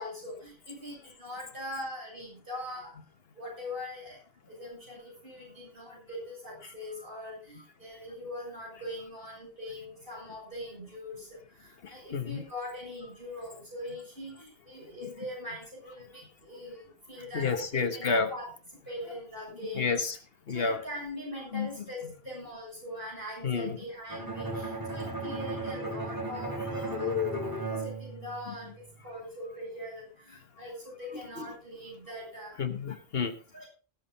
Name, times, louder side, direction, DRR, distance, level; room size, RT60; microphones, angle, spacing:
voice 1, 0.0-3.0 3.3-4.2 4.5-11.3 11.5-18.5 18.9-19.9 20.5-27.1 27.5-32.6 33.5-33.7, left 1 dB, 55° right, -2 dB, 7.4 m, -42 dB
voice 2, 11.8-12.4 15.0-15.1 17.3-18.3 19.7-20.2 20.5-20.8 21.5-21.7 23.4-23.7 26.9-27.9 28.5-28.6 31.4-31.5 32.6-33.3, left 5 dB, 65° left, 8 dB, 1.4 m, -30 dB
Bowed string instrument, 24.1-29.0, right 3 dB, 20° right, 2.7 m, -36 dB
18.5 x 7.6 x 4.2 m, 0.37 s
omnidirectional pair, 1.1 m